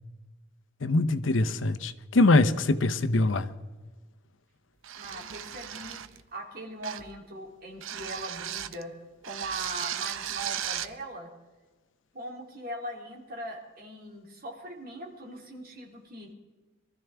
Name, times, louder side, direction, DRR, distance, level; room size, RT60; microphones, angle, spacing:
voice 1, 0.8-3.5, left 2 dB, 75° left, 0.7 m, -23 dB
sound 1, 4.8-6.2 6.8-7.2 7.8-8.8 9.2-10.9, right 10 dB, 90° right, 0.6 m, -36 dB
voice 2, 5.0-6.0 6.3-8.9 9.2-11.3 12.1-16.3, right 1 dB, 50° right, 3.0 m, -40 dB
23.5 x 13.5 x 3.4 m
head